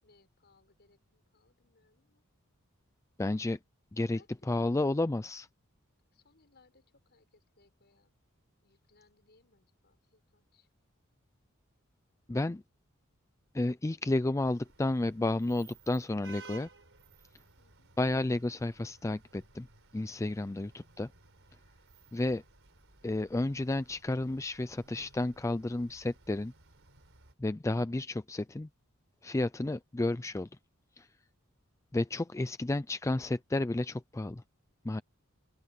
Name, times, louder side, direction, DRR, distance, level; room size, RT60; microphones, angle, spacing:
voice 1, 0.0-2.2 4.1-4.7 6.1-8.1 8.6-10.7 17.6-17.9, left 3 dB, 50° left, 6.6 m, -67 dB
voice 2, 3.2-3.6 3.9-4.2 4.5-5.5 12.3-12.6 13.5-16.7 18.0-19.7 19.9-21.1 22.1-22.4 23.0-26.5 27.4-28.7 29.2-30.5 31.0-31.1 31.9-34.4 34.8-35.0, left 2 dB, 15° left, 0.4 m, -31 dB
sound 1, 14.4-27.3, right 4 dB, 65° right, 4.5 m, -57 dB
open air
head